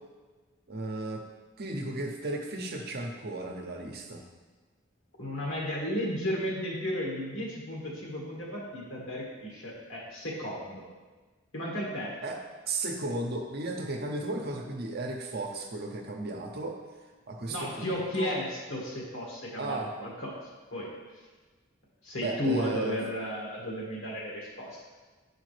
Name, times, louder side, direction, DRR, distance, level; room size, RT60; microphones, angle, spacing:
voice 1, 0.7-1.2 1.6-4.2 12.2-12.4 12.7-16.8 17.3-18.3 19.6-19.9 22.2-23.0, right 2 dB, 55° right, 2 dB, 0.8 m, -34 dB
voice 2, 5.2-10.8 11.5-12.1 17.5-20.4 20.7-20.9 22.0-24.8, left 1 dB, 80° left, -3 dB, 1.7 m, -34 dB
7.7 x 4.9 x 3.3 m, 1.3 s
head